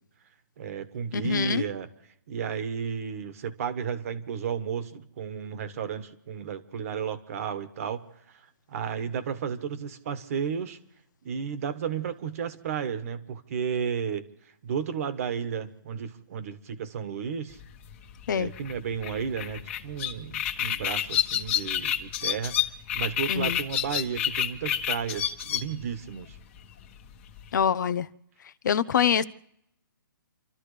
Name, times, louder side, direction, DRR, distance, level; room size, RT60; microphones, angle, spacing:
voice 1, 0.6-1.9 2.3-8.4 8.7-10.8 11.2-14.3 14.6-17.6 18.3-22.6 22.9-26.4, right 7 dB, 40° right, 1.5 m, -33 dB
voice 2, 1.1-1.6 18.3-18.5 23.3-23.6 27.5-28.1 28.6-29.2, left 8 dB, 60° left, 0.8 m, -24 dB
sound 1, 17.5-27.6, left 10 dB, 35° left, 1.6 m, -30 dB
30.0 x 13.0 x 3.3 m
hypercardioid pair, 160°, 11 cm